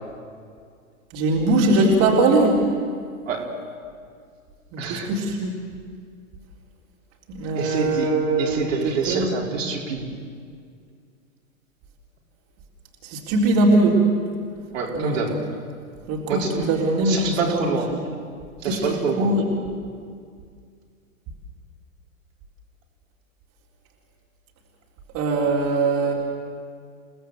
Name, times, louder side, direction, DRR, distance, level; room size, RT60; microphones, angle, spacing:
voice 1, 1.1-2.6 4.9-5.5 7.3-8.6 9.1-9.3 13.1-14.0 14.9-15.2 16.1-16.4 16.7-17.7 18.7-18.8 19.2-19.4 25.1-26.1, right 2 dB, 35° right, -3 dB, 4.1 m, -20 dB
voice 2, 4.8-5.1 7.5-10.0 14.7-15.4 16.3-18.0 18.6-19.3, right 4 dB, 65° right, -1 dB, 4.6 m, -27 dB
29.5 x 18.0 x 8.0 m, 2.2 s
figure-of-eight pair, 105°, 43 cm